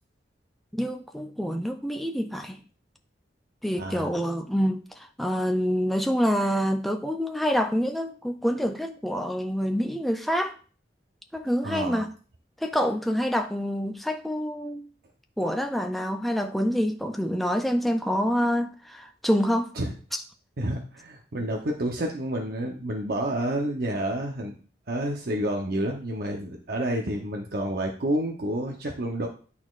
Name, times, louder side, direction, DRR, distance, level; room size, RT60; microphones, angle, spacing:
voice 1, 0.7-2.6 3.6-10.6 11.3-12.1 12.6-14.9 15.4-19.7 20.1-20.2, equal, ahead, 0.3 m, -26 dB
voice 2, 3.8-4.1 11.6-12.0 19.8-19.9 20.6-24.5 24.9-29.3, right 1 dB, 55° right, 0.8 m, -29 dB
11.0 x 4.2 x 2.4 m
head